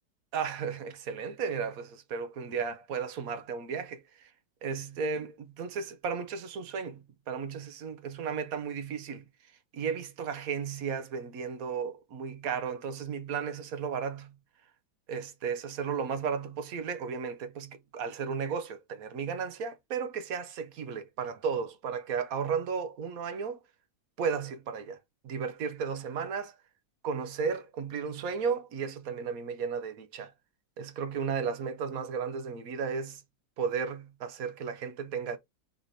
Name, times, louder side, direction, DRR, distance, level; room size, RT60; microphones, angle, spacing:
voice 1, 0.3-4.3 4.6-9.3 9.7-14.3 15.1-23.6 24.2-25.0 25.2-26.5 27.0-30.3 30.8-33.2 33.6-35.4, right 6 dB, 60° right, 1.0 m, -34 dB
4.1 x 3.0 x 4.0 m
omnidirectional pair, 2.0 m